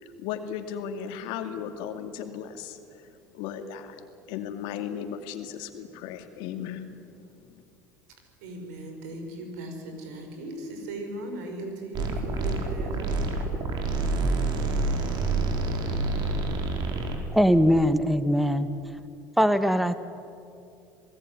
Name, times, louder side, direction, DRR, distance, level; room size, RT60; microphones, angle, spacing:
voice 1, 0.0-3.1 3.3-4.0 4.3-7.0 7.3-7.6, left 8 dB, 70° left, 7 dB, 2.5 m, -36 dB
voice 2, 8.4-13.3, right 1 dB, 80° right, 4 dB, 5.7 m, -38 dB
sound 1, 11.9-17.2, right 3 dB, 55° right, 4.7 m, -27 dB
voice 3, 17.3-18.7 19.4-20.0, equal, ahead, 11 dB, 1.5 m, -21 dB
27.5 x 19.0 x 9.9 m, 2.5 s
hypercardioid pair, 80°, 9 cm